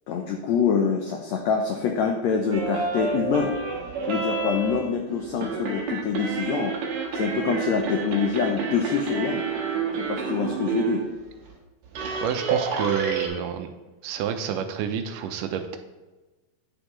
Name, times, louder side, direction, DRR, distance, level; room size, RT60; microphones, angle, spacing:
voice 1, 0.1-3.5 4.1-6.7 7.1-9.4 10.0-11.0, left 6 dB, 90° left, 3 dB, 1.5 m, -25 dB
sound 1, 2.5-11.1 11.5-11.6 11.8-13.3, right 5 dB, 65° right, 2.3 m, -29 dB
voice 2, 12.2-13.7 14.0-15.8, right 8 dB, 80° right, 6 dB, 2.2 m, -29 dB
9.0 x 6.8 x 3.1 m, 1.2 s
omnidirectional pair, 3.9 m